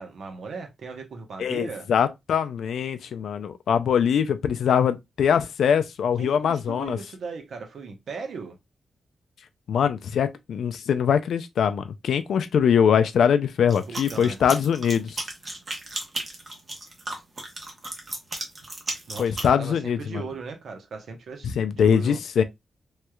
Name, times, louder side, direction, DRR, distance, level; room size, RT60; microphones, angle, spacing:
voice 1, 0.0-1.9 6.2-8.6 13.7-14.4 19.1-22.2, right 4 dB, 70° right, 0.9 m, -38 dB
voice 2, 1.4-7.0 9.7-15.2 19.2-20.2 21.4-22.4, left 7 dB, 90° left, 0.4 m, -22 dB
sound 1, 13.7-19.5, right 2 dB, 30° right, 1.0 m, -34 dB
3.2 x 3.0 x 2.3 m
wide cardioid pair, 150°, 0 cm